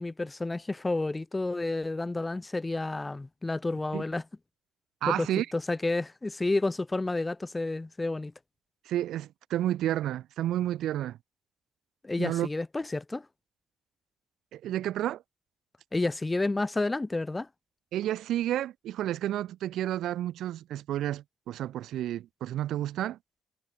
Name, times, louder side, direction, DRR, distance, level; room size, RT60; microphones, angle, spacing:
voice 1, 0.0-4.2 5.1-5.3 5.5-8.3 12.0-13.2 15.9-17.5, left 2 dB, 20° left, 1.0 m, -30 dB
voice 2, 5.0-5.5 8.9-11.2 12.2-12.5 14.5-15.2 17.9-23.2, right 12 dB, 80° right, 1.0 m, -31 dB
cardioid pair, 90°, 0 cm